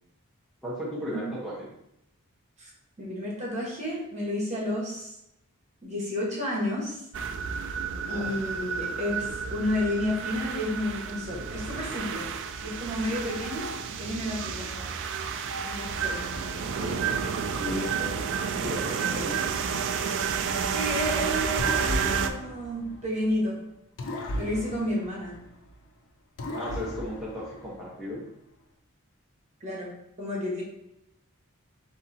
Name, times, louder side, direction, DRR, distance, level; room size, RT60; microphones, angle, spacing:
voice 1, 0.6-1.7 7.9-8.4 14.7-14.9 16.3-17.0 17.5-18.3 18.6-19.6 26.5-28.3, left 1 dB, ahead, -8 dB, 0.9 m, -36 dB
voice 2, 3.0-5.2 5.8-7.0 8.1-12.3 12.6-13.7 14.0-14.7 15.6-16.2 20.7-23.6 24.4-25.4 29.6-29.9 30.2-30.6, left 1 dB, 30° right, -4 dB, 1.3 m, -31 dB
sound 1, 7.1-22.3, right 6 dB, 55° right, 0.4 m, -30 dB
sound 2, 21.6-23.5 24.0-25.9 26.4-28.1, left 1 dB, 60° left, 0.6 m, -36 dB
3.7 x 2.8 x 4.2 m, 0.81 s
head